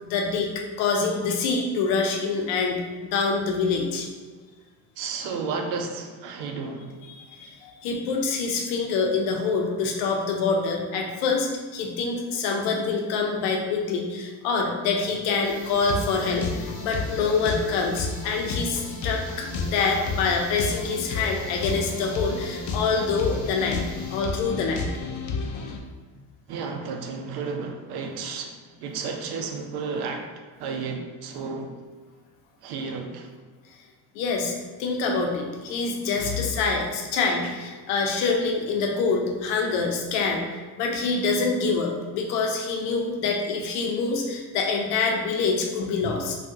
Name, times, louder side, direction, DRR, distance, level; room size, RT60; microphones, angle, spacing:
voice 1, 0.0-0.5 0.8-4.1 7.1-23.8 24.1-24.8 34.1-40.4 40.8-46.4, left 4 dB, 80° left, 2 dB, 0.7 m, -26 dB
voice 2, 5.0-7.0 26.5-31.7 32.6-33.3, right 4 dB, 60° right, 4 dB, 0.6 m, -32 dB
sound 1, 15.4-24.2, right 2 dB, 30° right, 1.3 m, -46 dB
sound 2, 15.6-25.8, left 4 dB, 45° left, 0.5 m, -32 dB
3.5 x 2.4 x 2.7 m, 1.5 s
supercardioid pair, 95°, 42 cm